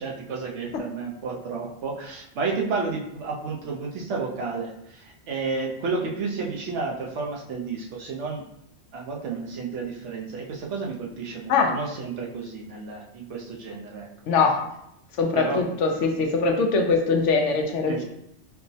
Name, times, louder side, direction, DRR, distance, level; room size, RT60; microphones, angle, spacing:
voice 1, 0.0-8.4 8.9-14.1 15.3-15.7 17.9-18.0, right 4 dB, 75° right, -1 dB, 0.9 m, -31 dB
voice 2, 14.3-14.6 15.2-18.0, left 4 dB, 80° left, 3 dB, 0.9 m, -22 dB
4.5 x 2.0 x 2.6 m, 0.78 s
omnidirectional pair, 1.2 m